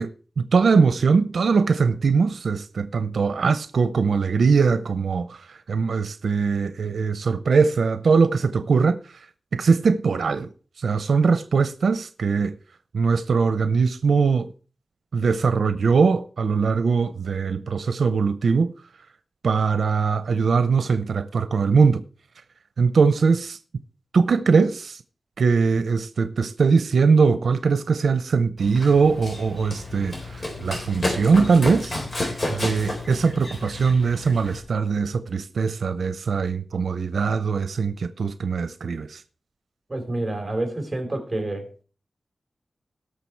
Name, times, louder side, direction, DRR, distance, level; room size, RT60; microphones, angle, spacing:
voice 1, 0.0-9.1 9.5-10.5 10.8-12.6 12.9-14.5 15.1-18.7 19.4-22.0 22.8-23.6 24.1-25.0 25.4-31.9 32.5-39.2, right 5 dB, 90° right, 0.6 m, -21 dB
Run, 28.6-34.6, left 2 dB, 40° left, 4.1 m, -31 dB
voice 2, 39.9-41.8, right 2 dB, 20° right, 4.2 m, -28 dB
18.0 x 6.7 x 4.6 m
wide cardioid pair, 100°, 0 cm